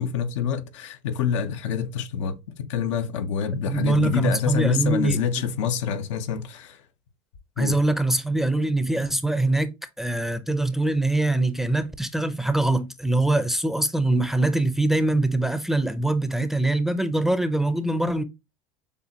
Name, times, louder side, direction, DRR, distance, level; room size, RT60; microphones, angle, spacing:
voice 1, 0.0-6.8 7.6-7.8, left 7 dB, 85° left, 0.8 m, -27 dB
voice 2, 3.7-5.2 7.6-18.2, right 2 dB, ahead, 0.5 m, -23 dB
6.8 x 2.5 x 2.9 m
supercardioid pair, 120°, 15 cm